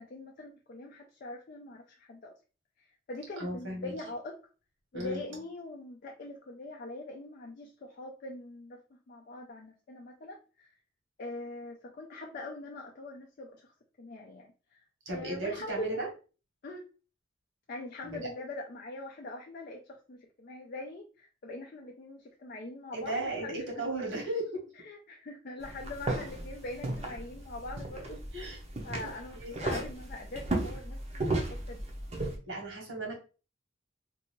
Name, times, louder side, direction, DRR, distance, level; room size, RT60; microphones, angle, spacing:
voice 1, 0.0-2.3 2.8-4.4 4.9-10.7 11.2-13.7 14.0-14.8 15.1-16.0 16.6-16.9 17.7-23.9 24.8-28.2 28.8-31.8, left 2 dB, 50° left, 1 dB, 0.4 m, -43 dB
voice 2, 3.4-3.9 4.9-5.2 15.0-16.1 18.0-18.2 22.9-24.6 28.3-28.6 29.0-29.1 29.4-29.8 32.5-33.1, right 2 dB, 75° right, -1 dB, 1.3 m, -35 dB
sound 1, 25.6-32.4, right 2 dB, 35° right, 0.6 m, -35 dB
2.6 x 2.4 x 2.9 m, 0.34 s
head